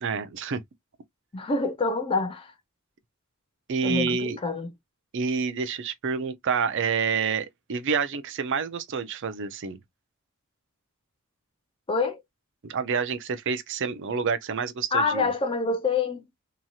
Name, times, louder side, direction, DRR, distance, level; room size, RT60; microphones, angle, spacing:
voice 1, 0.0-0.6 3.7-4.4 5.1-9.8 12.6-15.3, right 5 dB, 55° right, 0.5 m, -28 dB
voice 2, 1.3-2.5 3.8-4.7 11.9-12.2 14.9-16.2, left 4 dB, 25° left, 0.5 m, -26 dB
3.0 x 2.7 x 2.3 m
head